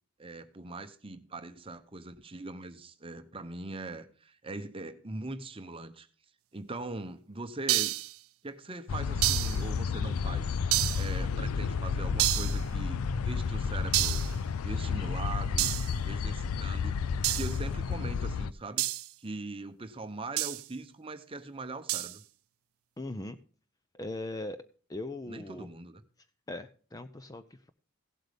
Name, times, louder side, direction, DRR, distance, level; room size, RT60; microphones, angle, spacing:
voice 1, 0.2-6.1 6.5-8.0 8.4-10.6 11.0-14.2 14.6-15.7 16.0-17.0 17.2-18.9 19.2-22.2 25.3-26.0, right 2 dB, 25° right, 0.8 m, -41 dB
sound 1, 7.7-8.2 9.2-9.6 10.7-11.1 12.2-12.6 13.9-14.3 15.6-15.9 17.2-17.6 18.8-19.1 20.4-20.7 21.9-22.2, right 17 dB, 70° right, 0.4 m, -29 dB
sound 2, 8.9-18.5, left 5 dB, 75° left, 0.4 m, -31 dB
voice 2, 23.0-23.4 23.9-24.6 24.9-25.7 26.5-27.7, left 2 dB, 15° left, 0.4 m, -39 dB
16.5 x 7.9 x 3.4 m
head